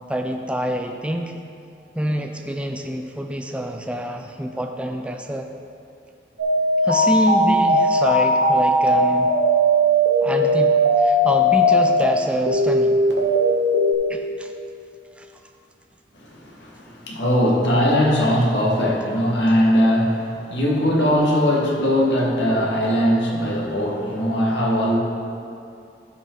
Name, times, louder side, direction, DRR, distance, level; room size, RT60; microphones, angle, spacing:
voice 1, 0.1-1.4 2.0-5.5 6.8-9.3 10.2-13.0 14.1-14.5 15.2-15.3, equal, 5° right, 3 dB, 0.4 m, -26 dB
sound 1, 6.4-12.0 12.5-13.9, equal, 80° right, 1.4 m, -18 dB
voice 2, 16.2-25.0, equal, 80° left, -3 dB, 1.8 m, -20 dB
14.0 x 5.3 x 4.0 m, 2.5 s
head